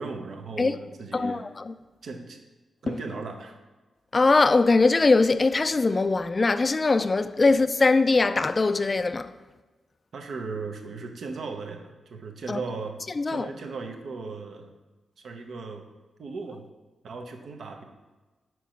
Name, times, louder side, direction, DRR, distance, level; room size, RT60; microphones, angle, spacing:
voice 1, 0.0-1.5 2.0-2.4 2.8-3.6 10.1-13.0 13.3-14.7 15.2-15.8 16.2-16.6 17.0-17.8, right 4 dB, 70° right, 0.7 m, -37 dB
voice 2, 1.1-1.7 4.1-9.3 12.5-12.6 13.2-13.5, left 3 dB, 40° left, 0.3 m, -21 dB
4.6 x 4.5 x 5.1 m
supercardioid pair, 50°, 0 cm